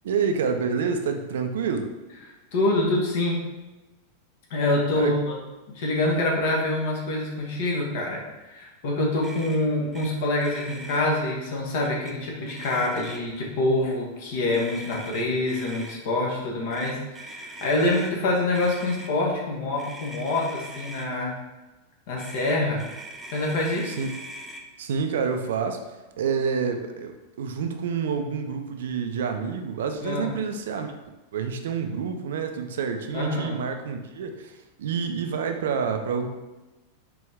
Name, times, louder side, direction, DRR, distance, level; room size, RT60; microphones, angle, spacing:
voice 1, 0.0-1.9 5.0-5.2 23.9-24.2 24.8-25.8 26.2-30.9 31.3-36.3, right 6 dB, 60° right, 6 dB, 0.4 m, -28 dB
voice 2, 2.5-3.4 4.5-5.4 5.7-21.3 22.1-22.8 23.3-23.9 30.0-30.3 33.1-33.6, left 2 dB, 50° left, -2 dB, 1.2 m, -26 dB
Motor vehicle (road), 9.2-9.6 9.9-10.1 10.4-11.0 11.8-12.1 12.5-13.4 14.5-16.0 16.7-18.1 18.5-19.1 19.8-21.1 22.2-24.6, right 1 dB, 10° right, 0.6 m, -41 dB
4.7 x 3.0 x 3.4 m, 1.1 s
figure-of-eight pair, 90°, 0 cm